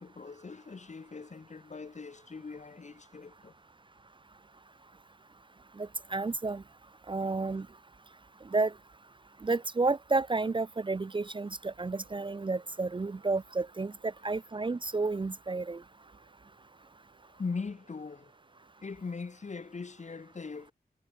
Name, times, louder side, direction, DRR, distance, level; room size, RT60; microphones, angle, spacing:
voice 1, 0.0-3.5 17.3-18.3 18.8-20.7, left 4 dB, 45° left, 1.3 m, -40 dB
voice 2, 5.8-6.6 7.1-7.7 8.5-8.7 9.4-15.8, right 3 dB, 30° right, 0.5 m, -31 dB
sound 1, 11.7-19.2, right 5 dB, 65° right, 6.4 m, -68 dB
wide cardioid pair, 110°, 16 cm